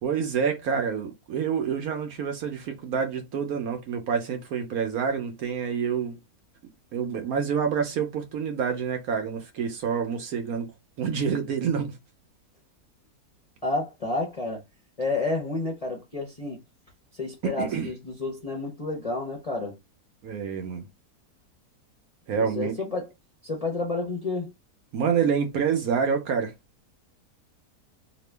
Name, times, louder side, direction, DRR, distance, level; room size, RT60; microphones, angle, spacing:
voice 1, 0.0-6.2 6.9-10.7 11.0-12.0 17.4-17.9 20.2-20.8 22.3-22.7 24.9-26.5, right 6 dB, 65° right, 1.1 m, -27 dB
voice 2, 13.6-14.6 15.0-16.6 17.2-19.8 22.4-23.1 23.4-24.5, left 3 dB, 35° left, 0.6 m, -30 dB
2.9 x 2.4 x 3.2 m
omnidirectional pair, 1.7 m